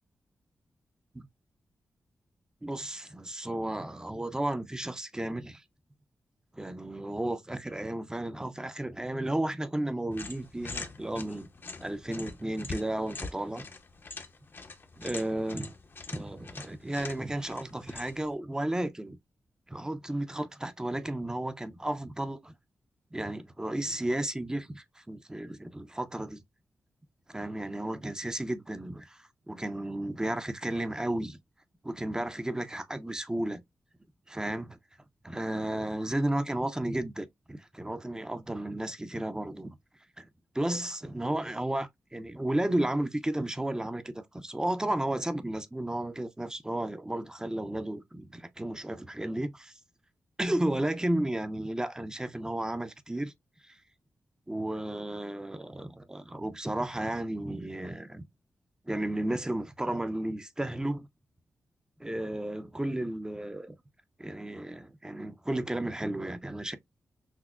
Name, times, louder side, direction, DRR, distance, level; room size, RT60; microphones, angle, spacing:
voice 1, 2.6-5.6 6.6-11.5 11.8-13.7 15.0-15.7 16.1-19.2 19.7-22.5 23.1-26.4 27.3-31.4 31.8-33.6 34.3-34.8 35.2-39.8 40.2-40.3 40.5-49.7 50.4-53.3 53.7-53.8 54.5-58.2 58.9-61.1 62.0-63.7 64.2-66.8, right 1 dB, 15° right, 0.5 m, -33 dB
sound 1, 10.1-18.3, left 3 dB, 45° left, 0.6 m, -44 dB
5.9 x 2.0 x 2.3 m
cardioid pair, 75°, 5 cm